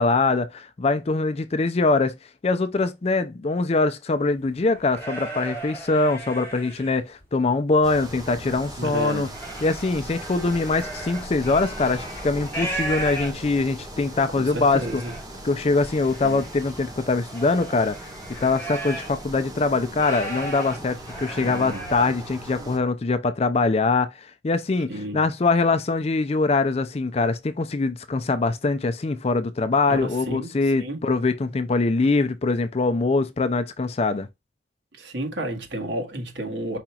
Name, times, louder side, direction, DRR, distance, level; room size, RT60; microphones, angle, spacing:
voice 1, 0.0-2.1 2.4-9.3 9.6-15.0 15.4-18.1 18.4-34.3, left 3 dB, 35° left, 0.4 m, -23 dB
sound 1, 4.4-7.2 7.7-8.5 8.9-13.7 14.3-14.4 14.6-15.2 15.8-19.2 19.6-22.1, right 2 dB, 15° left, 2.5 m, -36 dB
sound 2, 7.8-22.8, right 1 dB, 20° right, 1.4 m, -39 dB
voice 2, 8.8-9.3 14.3-15.1 16.2-16.4 21.4-21.8 22.6-22.7 24.9-25.2 29.9-31.0 34.9-36.8, right 1 dB, 80° right, 1.5 m, -31 dB
5.0 x 4.3 x 2.3 m
head